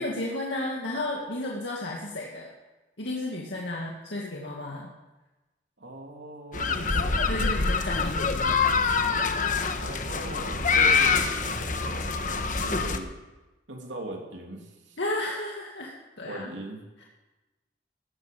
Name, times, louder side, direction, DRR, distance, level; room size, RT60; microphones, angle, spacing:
voice 1, 0.0-2.5 3.0-4.9 6.8-8.8 15.0-16.5, left 1 dB, 75° left, -2 dB, 2.1 m, -33 dB
voice 2, 5.8-7.4 9.8-13.2 13.7-15.0 16.2-16.8, right 2 dB, 85° right, 1 dB, 3.0 m, -40 dB
sound 1, 6.5-13.0, left 4 dB, 45° left, 1.1 m, -25 dB
16.0 x 13.5 x 5.3 m, 1.1 s
head